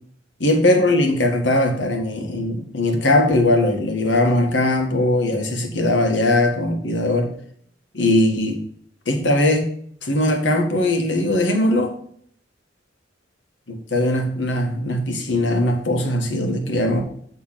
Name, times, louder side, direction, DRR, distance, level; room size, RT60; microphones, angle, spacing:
voice 1, 0.4-7.3 7.9-8.6 9.1-9.6 10.0-11.9 13.7-17.0, left 1 dB, 75° left, 3 dB, 1.5 m, -20 dB
8.9 x 3.5 x 6.1 m, 0.63 s
head